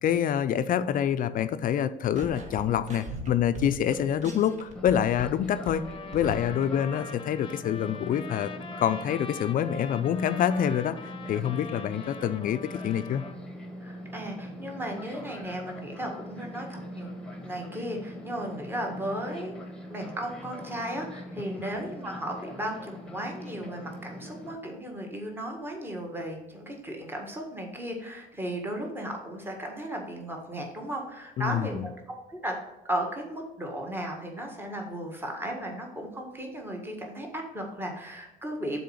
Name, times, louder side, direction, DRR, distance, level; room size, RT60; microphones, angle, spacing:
voice 1, 0.0-5.9 6.1-8.5 8.8-13.2 31.4-31.9, left 9 dB, 55° left, 11 dB, 0.5 m, -26 dB
sound 1, 2.1-5.4 5.7-6.7, right 1 dB, 45° right, 1.6 m, -40 dB
Fixed-wing aircraft airplane, 4.8-24.5, equal, 5° left, 1.4 m, -42 dB
Trumpet, 5.7-13.4, left 5 dB, 30° left, 0.9 m, -43 dB
voice 2, 13.8-17.1 17.4-19.6 19.9-32.6 32.9-38.8, right 1 dB, 15° right, 1 dB, 1.6 m, -35 dB
6.7 x 4.3 x 6.4 m, 0.96 s
cardioid pair, 110°, 17 cm